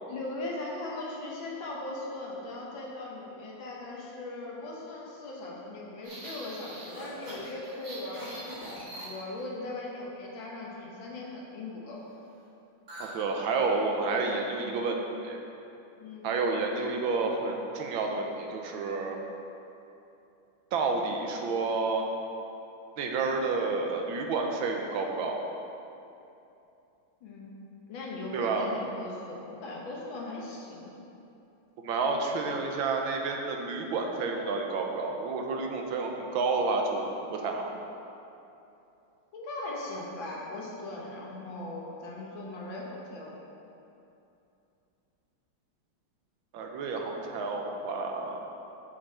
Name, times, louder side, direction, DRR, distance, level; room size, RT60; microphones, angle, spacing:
voice 1, 0.1-12.1 16.0-16.3 27.2-27.5 27.9-30.9 39.3-43.4, left 2 dB, 75° left, -3 dB, 2.0 m, -39 dB
sound 1, 6.0-9.5 12.9-13.2 13.4-13.6 14.1-14.5, right 1 dB, 50° right, 2.7 m, -42 dB
voice 2, 13.0-15.4 16.2-19.2 20.7-22.1 23.0-25.4 28.3-28.7 31.8-37.7 46.5-48.4, right 3 dB, 90° right, 2 dB, 1.6 m, -30 dB
7.5 x 6.9 x 4.2 m, 2.8 s
omnidirectional pair, 2.1 m